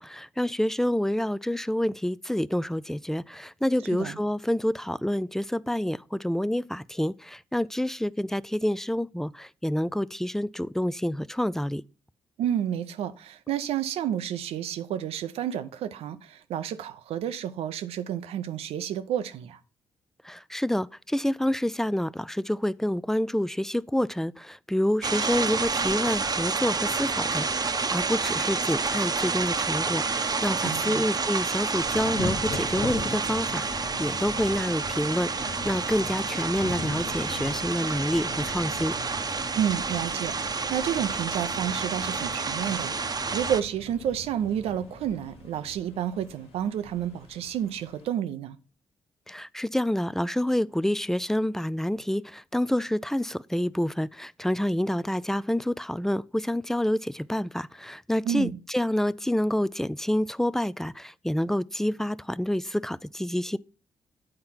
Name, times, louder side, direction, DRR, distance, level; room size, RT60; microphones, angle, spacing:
voice 1, 0.0-11.8 20.2-38.9 49.3-63.6, left 1 dB, 5° left, 0.3 m, -28 dB
voice 2, 12.4-19.6 30.6-31.1 39.5-48.6 58.2-58.6, right 10 dB, 75° right, 0.6 m, -30 dB
sound 1, 25.0-43.6, right 4 dB, 40° right, 0.8 m, -29 dB
Thunder / Rain, 31.8-48.1, left 2 dB, 80° left, 1.2 m, -40 dB
8.7 x 4.3 x 5.7 m
supercardioid pair, 50°, 10 cm